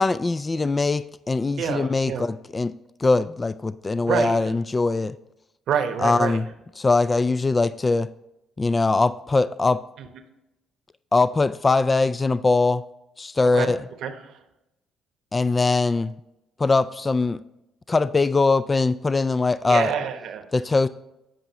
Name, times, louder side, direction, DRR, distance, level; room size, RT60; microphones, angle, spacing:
voice 1, 0.0-2.7 3.0-5.2 6.0-6.5 6.8-8.1 8.6-9.8 11.1-12.8 13.2-13.8 15.3-16.1 16.6-17.4 17.9-19.9 20.5-20.9, left 3 dB, 30° left, 15 dB, 0.4 m, -21 dB
voice 2, 1.6-2.3 4.1-4.5 5.7-6.4 10.0-10.1 13.4-13.7 14.0-14.4 19.6-20.4, right 8 dB, 70° right, 8 dB, 1.0 m, -27 dB
15.0 x 5.5 x 3.0 m, 0.92 s
hypercardioid pair, 55°, 0 cm